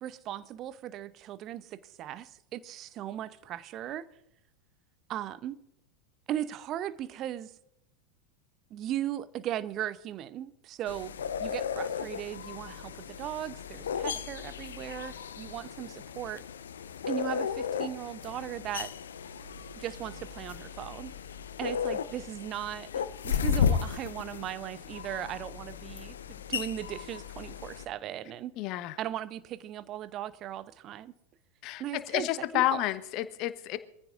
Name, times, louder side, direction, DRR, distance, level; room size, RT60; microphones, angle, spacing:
voice 1, 0.0-4.1 5.1-5.6 6.3-7.6 8.7-11.1 11.4-16.4 17.1-18.9 19.8-21.1 21.6-26.2 26.5-28.5 29.0-31.1 31.8-32.3 32.5-32.8, right 12 dB, 40° right, 0.8 m, -37 dB
sound 1, 10.9-27.9, left 7 dB, 70° left, 0.8 m, -35 dB
voice 2, 28.6-29.0 31.6-33.8, left 15 dB, 45° left, 1.2 m, -30 dB
24.5 x 15.0 x 2.6 m
figure-of-eight pair, 85°, 0 cm